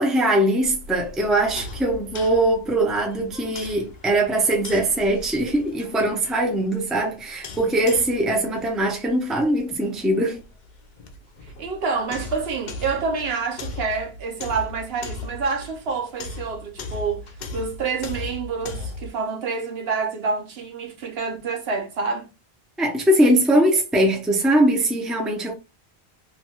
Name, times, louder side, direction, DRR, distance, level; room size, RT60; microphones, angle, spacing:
voice 1, 0.0-10.4 22.8-25.5, right 1 dB, ahead, 0.5 m, -21 dB
sound 1, 0.6-19.1, left 3 dB, 55° left, 0.6 m, -38 dB
voice 2, 11.4-22.3, right 4 dB, 70° right, 1.0 m, -28 dB
3.1 x 2.3 x 2.8 m
omnidirectional pair, 1.1 m